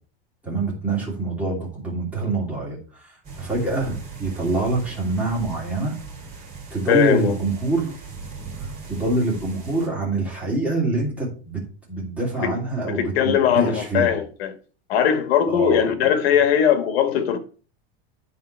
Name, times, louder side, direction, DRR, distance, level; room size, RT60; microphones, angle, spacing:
voice 1, 0.4-6.0 6.7-8.0 8.6-11.6 11.9-14.1 15.5-16.1, right 2 dB, 5° right, 2.8 m, -25 dB
sound 1, 3.2-9.9, right 4 dB, 20° right, 2.6 m, -39 dB
voice 2, 6.9-7.3 12.4-12.5 12.9-14.5 14.9-17.4, left 9 dB, 75° left, 1.4 m, -20 dB
9.6 x 3.9 x 4.4 m
supercardioid pair, 165°, 31 cm